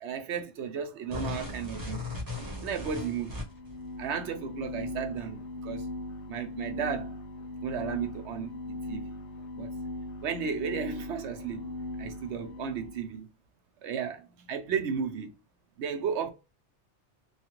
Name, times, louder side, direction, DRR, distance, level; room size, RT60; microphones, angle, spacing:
voice 1, 0.0-2.0 2.6-3.4 4.0-5.9 6.3-7.2 7.6-9.1 9.6-9.7 10.2-11.7 12.0-13.3 13.8-15.3 15.8-16.3, right 7 dB, 75° right, 0.9 m, -34 dB
sound 1, 1.1-3.8, left 2 dB, 20° right, 0.9 m, -37 dB
sound 2, 3.4-13.1, left 2 dB, 80° left, 1.0 m, -39 dB
3.1 x 2.3 x 2.9 m
omnidirectional pair, 1.2 m